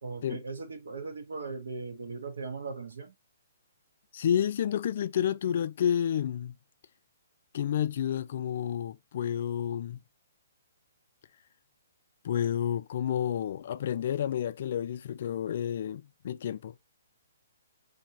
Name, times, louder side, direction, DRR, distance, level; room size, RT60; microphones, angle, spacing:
voice 1, 0.0-3.1, right 4 dB, 85° right, 1.4 m, -38 dB
voice 2, 4.1-6.5 7.5-10.0 12.2-16.7, left 9 dB, 45° left, 0.3 m, -30 dB
4.0 x 2.7 x 2.9 m
hypercardioid pair, 165°, 0 cm